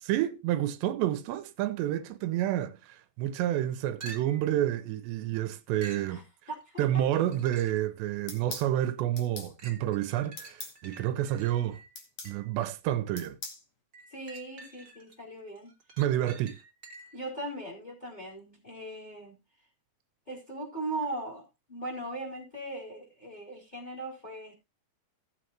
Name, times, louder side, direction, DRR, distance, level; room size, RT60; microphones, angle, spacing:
voice 1, 0.0-6.2 6.8-11.8 12.2-13.4 16.0-16.6, right 12 dB, 85° right, 3.0 m, -29 dB
sound 1, 4.0-4.6 5.8-6.1 7.1-7.9 8.4-8.5 9.6-12.6 13.9-15.2 15.6-17.3 21.0-21.1, right 3 dB, 65° right, 0.8 m, -49 dB
voice 2, 6.5-7.0 14.1-15.7 17.1-19.4 20.3-21.4 21.7-24.5, right 2 dB, 10° left, 4.2 m, -39 dB
sound 2, 8.3-8.7 9.2-9.5 10.4-10.8 11.9-12.3 13.2-13.6, left 4 dB, 40° left, 2.3 m, -41 dB
17.0 x 7.8 x 3.0 m
omnidirectional pair, 5.0 m